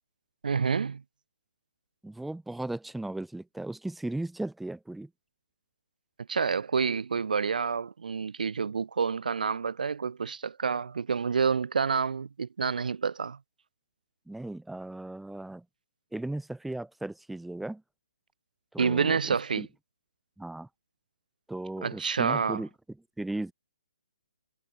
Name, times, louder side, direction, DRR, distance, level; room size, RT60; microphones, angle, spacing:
voice 1, 0.4-1.0 6.3-13.4 18.8-19.7 21.8-22.6, right 5 dB, 80° right, 0.4 m, -28 dB
voice 2, 2.0-5.1 14.3-15.6 16.1-17.8 18.7-19.7 20.4-20.7 21.5-22.7 23.2-23.5, right 2 dB, ahead, 0.9 m, -36 dB
hypercardioid pair, 160°, 4 cm